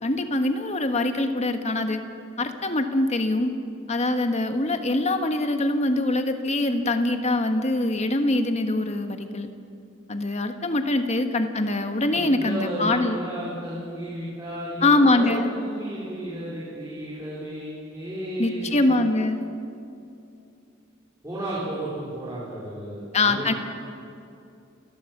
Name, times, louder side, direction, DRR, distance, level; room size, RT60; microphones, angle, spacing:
voice 1, 0.0-2.0 2.4-3.5 3.9-9.5 10.1-13.2 14.8-15.5 18.4-19.5 23.1-23.5, left 2 dB, 35° left, 6 dB, 1.4 m, -23 dB
voice 2, 12.1-19.0 21.2-23.5, right 1 dB, 15° right, -9 dB, 4.3 m, -33 dB
29.0 x 12.5 x 7.2 m, 2.6 s
head